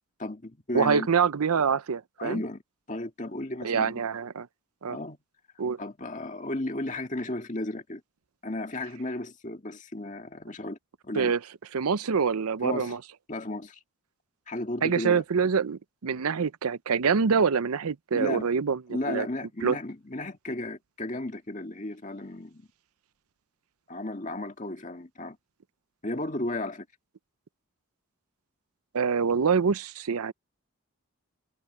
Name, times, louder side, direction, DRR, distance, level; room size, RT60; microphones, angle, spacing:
voice 1, 0.2-1.1 2.2-2.6 2.9-4.0 4.9-5.2 5.8-8.0 8.4-10.8 11.0-11.3 12.6-13.0 13.3-13.8 14.5-15.2 18.1-18.5 18.9-22.7 23.9-25.4 26.0-26.9, left 2 dB, 35° left, 2.0 m, -34 dB
voice 2, 0.7-2.4 3.6-4.5 4.8-5.0 5.6-5.8 11.2-11.4 11.7-13.0 14.8-18.8 19.1-19.3 19.6-19.8 28.9-30.3, right 6 dB, 85° right, 0.6 m, -25 dB
head